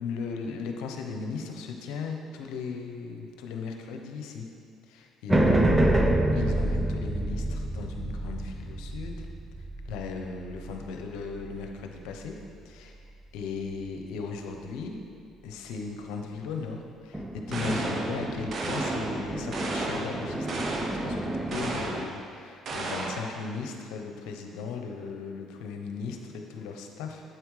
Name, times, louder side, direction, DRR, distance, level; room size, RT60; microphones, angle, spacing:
voice 1, 0.0-4.5 4.9-5.7 6.3-9.3 9.9-12.4 12.6-13.0 13.3-15.0 15.4-27.2, left 5 dB, 80° left, 3 dB, 0.8 m, -37 dB
sound 1, 5.3-11.8 17.1-22.0, right 1 dB, 15° right, 0.8 m, -28 dB
sound 2, 17.5-18.1 18.5-19.1 19.5-20.1 20.5-21.0 21.5-22.1 22.7-23.3, right 2 dB, 50° right, 1.1 m, -33 dB
9.2 x 7.8 x 3.3 m, 2.3 s
supercardioid pair, 65°, 0 cm